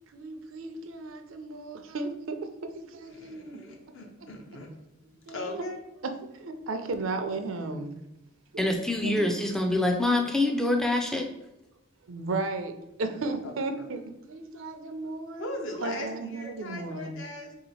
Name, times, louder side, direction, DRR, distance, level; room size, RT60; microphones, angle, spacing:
voice 1, 0.1-2.4 2.7-4.0 5.3-5.6 6.0-7.9 8.5-8.7 9.0-9.4 12.1-12.7 13.0-15.5 15.8-17.2, right 3 dB, 75° right, 7 dB, 0.5 m, -35 dB
voice 2, 3.1-4.7 5.3-5.8 13.8-13.9 15.4-17.5, left 1 dB, 70° left, 1 dB, 0.8 m, -39 dB
voice 3, 8.6-11.3, left 2 dB, ahead, 3 dB, 0.3 m, -25 dB
3.6 x 2.8 x 4.0 m, 0.91 s
head